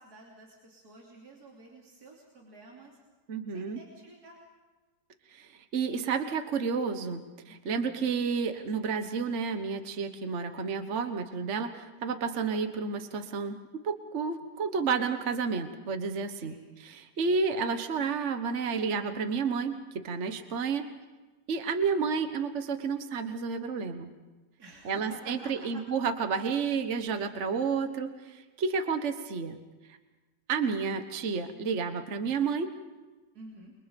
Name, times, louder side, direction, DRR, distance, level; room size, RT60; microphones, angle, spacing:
voice 1, 0.0-3.0 3.5-4.4 7.7-8.1 16.4-16.8 24.6-25.8 33.3-33.7, right 2 dB, 60° right, -2 dB, 3.7 m, -50 dB
voice 2, 3.3-3.8 5.3-16.5 16.8-20.9 21.5-24.1 24.8-29.6 30.5-32.7, right 5 dB, 45° right, 8 dB, 1.5 m, -31 dB
28.5 x 23.5 x 5.3 m, 1.2 s
omnidirectional pair, 1.9 m